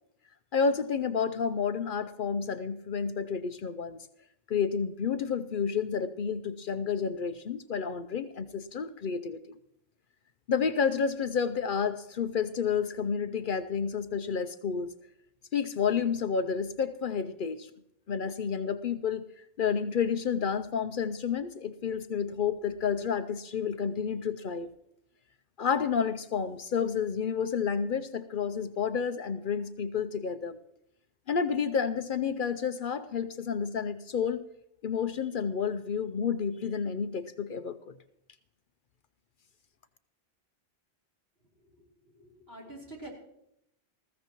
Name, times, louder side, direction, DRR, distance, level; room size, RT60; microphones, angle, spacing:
voice 1, 0.5-4.0 4.5-9.6 10.5-14.9 15.5-17.7 18.1-19.2 19.6-24.7 25.6-30.6 31.3-34.4 34.8-37.9, left 6 dB, 55° left, 11 dB, 0.7 m, -30 dB
voice 2, 41.6-43.1, right 2 dB, 70° right, -3 dB, 3.9 m, -47 dB
19.5 x 15.0 x 3.0 m, 0.78 s
omnidirectional pair, 1.1 m